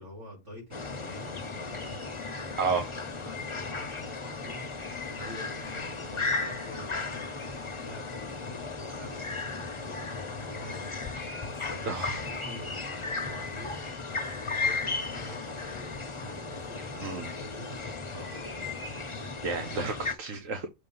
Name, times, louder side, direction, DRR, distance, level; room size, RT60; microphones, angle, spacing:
voice 1, 0.0-2.0 2.5-2.9 3.1-4.8 5.1-13.8 14.2-19.6, equal, 70° right, 4.3 m, -47 dB
sound 1, 0.7-20.1, left 3 dB, 30° left, 0.7 m, -35 dB
voice 2, 2.6-2.9 11.9-12.2 17.0-17.3 19.4-20.7, right 4 dB, 90° right, 1.4 m, -31 dB
6.7 x 3.1 x 5.6 m
omnidirectional pair, 1.3 m